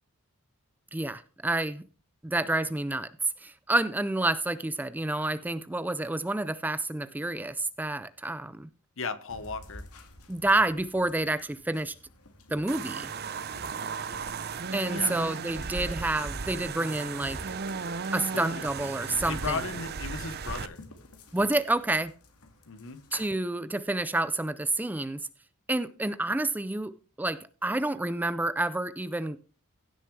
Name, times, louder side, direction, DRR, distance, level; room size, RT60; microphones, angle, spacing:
voice 1, 0.9-1.8 2.2-3.1 3.4-8.7 10.3-11.9 12.5-13.1 14.7-17.4 18.1-19.6 21.3-22.1 23.1-25.3 25.7-29.4, right 2 dB, 10° right, 0.4 m, -29 dB
voice 2, 9.0-9.9 14.9-15.2 18.3-18.6 19.3-20.8 22.7-23.0, left 4 dB, 60° left, 1.0 m, -36 dB
sound 1, 9.3-23.2, left 2 dB, 80° left, 2.0 m, -51 dB
sound 2, 12.7-20.7, right 5 dB, 45° right, 0.6 m, -35 dB
16.0 x 6.9 x 3.2 m
head